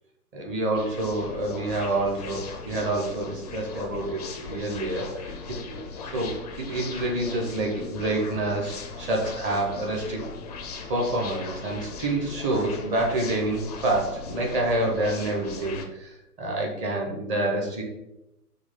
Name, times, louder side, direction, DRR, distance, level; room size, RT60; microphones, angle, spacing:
voice 1, 0.3-10.2 10.9-17.8, right 2 dB, 15° right, -1 dB, 0.7 m, -28 dB
sound 1, 0.7-15.8, left 4 dB, 30° left, 0.4 m, -39 dB
6.2 x 2.3 x 3.5 m, 0.89 s
figure-of-eight pair, 120°, 46 cm